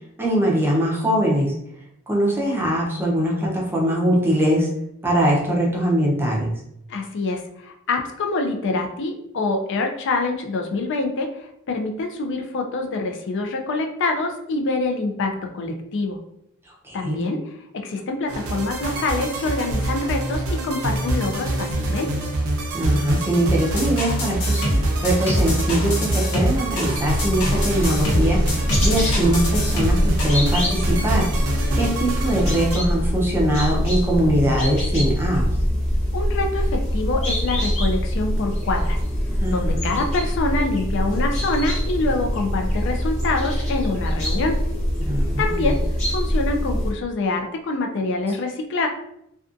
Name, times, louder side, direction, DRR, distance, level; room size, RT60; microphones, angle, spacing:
voice 1, 0.2-1.5 2.1-4.7 5.0-6.5 16.8-17.2 22.7-24.6 25.0-28.4 28.8-31.3 31.7-35.5 39.4-39.9 45.1-45.7, right 1 dB, 10° right, -3 dB, 0.5 m, -22 dB
voice 2, 6.9-16.2 16.9-17.4 17.7-22.1 36.1-39.0 39.5-44.6 45.4-45.8 46.1-48.9, left 3 dB, 60° left, 3 dB, 0.4 m, -25 dB
sound 1, 18.3-32.8, right 1 dB, 85° right, 0.6 m, -26 dB
sound 2, 23.8-30.4, equal, 85° left, 0.8 m, -24 dB
sound 3, 26.9-46.9, equal, 30° left, 0.8 m, -24 dB
2.5 x 2.3 x 2.4 m, 0.77 s
head